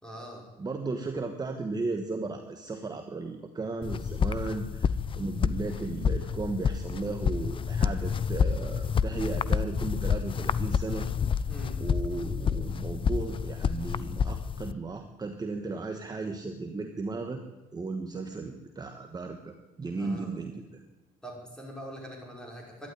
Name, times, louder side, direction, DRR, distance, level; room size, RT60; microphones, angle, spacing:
voice 1, 0.0-0.4 11.5-11.8 19.9-20.3 21.2-22.9, equal, 5° left, -2 dB, 5.6 m, -43 dB
voice 2, 0.6-11.1 11.8-17.4 17.7-20.8, right 3 dB, 25° right, 5 dB, 1.3 m, -35 dB
sound 1, 3.8-14.7, left 7 dB, 30° left, 0.5 m, -29 dB
12.0 x 11.0 x 9.8 m, 1.1 s
cardioid pair, 110°, 17 cm